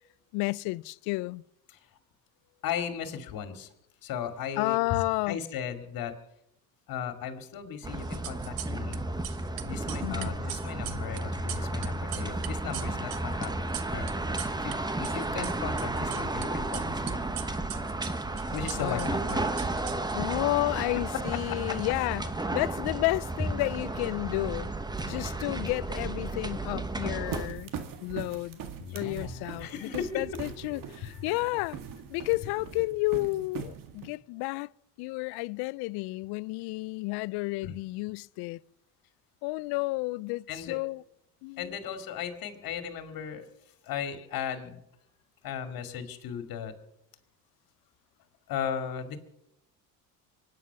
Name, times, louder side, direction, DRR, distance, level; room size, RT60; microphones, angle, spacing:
voice 1, 0.3-1.4 4.6-5.4 10.0-10.3 18.8-19.1 20.1-22.3 22.5-24.7 25.1-27.7 28.0-28.6 28.9-31.8 32.1-34.7 35.0-38.6 39.4-41.0 41.4-41.7, left 23 dB, 75° left, 0.5 m, -31 dB
voice 2, 2.6-3.7 4.0-6.1 6.9-9.0 9.6-13.5 13.9-14.0 14.6-17.3 18.5-19.4 21.7-21.8 25.0-25.3 28.8-30.2 30.7-31.2 37.6-37.8 40.5-40.8 41.6-43.5 43.8-44.8 45.4-46.7 48.5-49.2, left 8 dB, 60° left, 2.4 m, -36 dB
sound 1, 7.8-27.5, right 2 dB, 10° right, 1.2 m, -33 dB
sound 2, 8.0-9.0 9.2-14.8 15.0-16.5 16.7-20.4, right 16 dB, 90° right, 1.0 m, -40 dB
sound 3, 27.3-34.1, right 7 dB, 55° right, 1.9 m, -41 dB
24.0 x 9.6 x 5.9 m
supercardioid pair, 90°, 39 cm